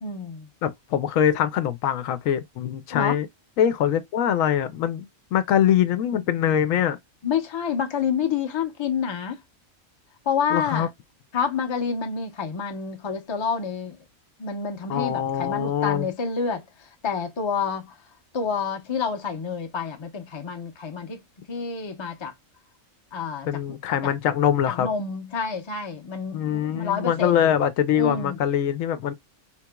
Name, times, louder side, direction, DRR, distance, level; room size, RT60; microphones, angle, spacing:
voice 1, 0.0-0.5 2.9-3.2 7.2-9.4 10.3-10.9 11.3-14.0 14.4-18.0 18.3-21.2 21.5-22.3 23.1-24.1 24.7-27.5 27.9-28.4, left 6 dB, 30° left, 0.6 m, -28 dB
voice 2, 0.6-3.3 3.6-7.0 10.5-10.9 14.9-16.1 23.5-24.9 26.3-29.1, left 9 dB, 85° left, 1.0 m, -23 dB
4.3 x 2.9 x 2.2 m
omnidirectional pair, 1.4 m